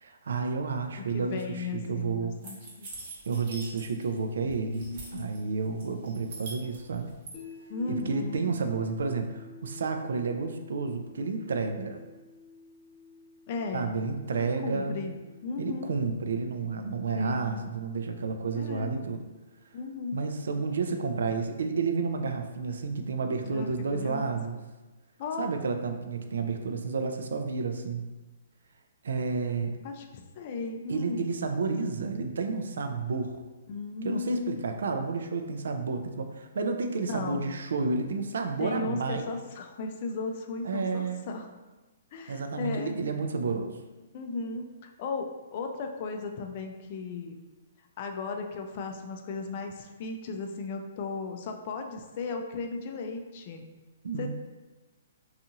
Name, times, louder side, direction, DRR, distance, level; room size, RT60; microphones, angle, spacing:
voice 1, 0.0-2.4 3.3-4.9 5.1-7.1 7.9-12.0 13.7-15.0 15.6-19.2 20.1-24.6 25.4-28.1 29.0-29.7 30.9-33.4 34.0-39.3 40.6-41.2 42.3-43.7 54.0-54.3, right 4 dB, 80° right, 5 dB, 0.3 m, -31 dB
voice 2, 1.1-2.9 4.4-5.3 7.7-8.6 13.5-13.9 14.3-16.0 17.1-17.7 18.5-19.0 19.7-20.2 23.4-24.4 25.2-25.5 29.8-31.3 33.7-34.6 37.1-37.5 38.6-41.5 42.1-43.0 44.1-47.4 48.0-53.6 54.2-54.3, left 4 dB, 45° left, 4 dB, 0.3 m, -36 dB
sound 1, 2.4-4.2 4.5-5.4 5.8-7.3, right 3 dB, 50° right, 0.9 m, -44 dB
sound 2, 7.3-19.4, left 4 dB, 20° left, 0.7 m, -52 dB
2.6 x 2.4 x 2.7 m, 1.2 s
hypercardioid pair, 150°, 0 cm